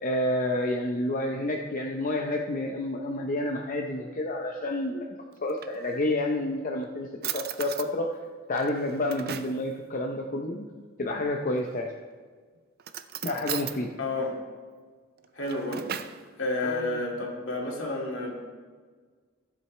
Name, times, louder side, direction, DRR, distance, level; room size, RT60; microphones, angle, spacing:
voice 1, 0.0-5.1 5.4-8.1 8.5-10.6 11.0-11.9 13.2-13.9 16.6-17.0, left 1 dB, 40° left, 1 dB, 0.7 m, -29 dB
Drawer open or close, 5.3-6.3 6.8-6.9 7.2-7.9 8.5-9.6 11.5-12.0 12.8-13.8 15.2-16.2, right 9 dB, 50° right, 0.5 m, -37 dB
voice 2, 14.0-14.4 15.3-15.9 16.4-18.3, left 2 dB, 70° left, -2 dB, 2.4 m, -30 dB
15.0 x 7.8 x 3.2 m, 1.5 s
head